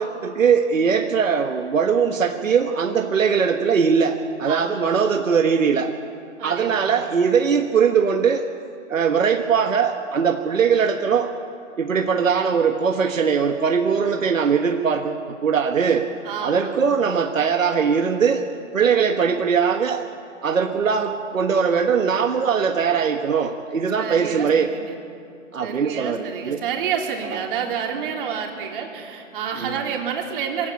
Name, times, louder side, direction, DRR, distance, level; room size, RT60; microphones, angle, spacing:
voice 1, 0.0-5.9 6.4-8.5 8.9-11.3 11.8-16.1 16.4-18.4 18.7-20.1 20.4-24.7 25.5-26.6 29.6-29.8, right 6 dB, 80° right, 4 dB, 1.5 m, -20 dB
voice 2, 4.5-4.9 6.4-7.0 16.2-16.9 24.0-24.9 25.6-30.7, right 7 dB, 45° right, 1 dB, 3.6 m, -29 dB
23.0 x 16.5 x 8.8 m, 2.5 s
hypercardioid pair, 145°, 39 cm